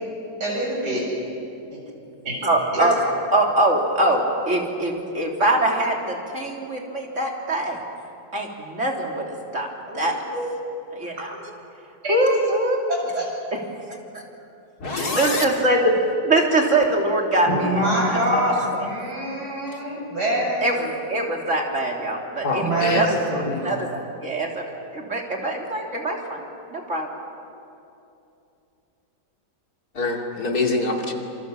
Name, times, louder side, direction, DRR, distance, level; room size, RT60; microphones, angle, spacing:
voice 1, 0.4-1.0 2.7-2.9 9.9-10.4 12.0-12.2 12.9-13.2 17.5-20.7 22.6-23.6, equal, 60° right, -3 dB, 8.7 m, -25 dB
voice 2, 2.4-7.8 8.3-9.7 9.9-10.2 10.9-11.3 12.1-12.8 13.5-13.6 14.1-14.2 14.9-15.9 16.2-18.9 20.6-26.4 26.7-27.1, right 1 dB, 40° right, 0 dB, 3.4 m, -23 dB
voice 3, 14.8-15.4 22.4-23.1 29.9-31.1, left 3 dB, 55° left, 1 dB, 3.2 m, -24 dB
27.0 x 27.0 x 7.5 m, 2.7 s
omnidirectional pair, 2.0 m